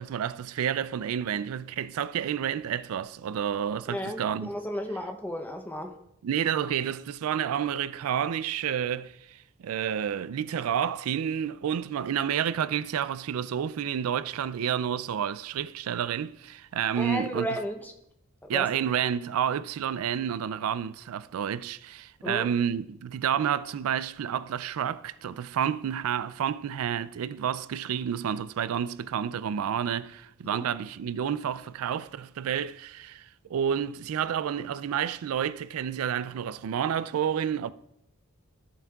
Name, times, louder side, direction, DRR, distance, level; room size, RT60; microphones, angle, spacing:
voice 1, 0.0-4.5 6.2-17.5 18.5-37.7, right 8 dB, 85° right, 0.3 m, -30 dB
voice 2, 3.9-6.0 16.9-17.9 18.4-18.8 22.2-22.5 30.4-30.7, equal, 10° left, 0.7 m, -34 dB
14.0 x 7.1 x 2.3 m
head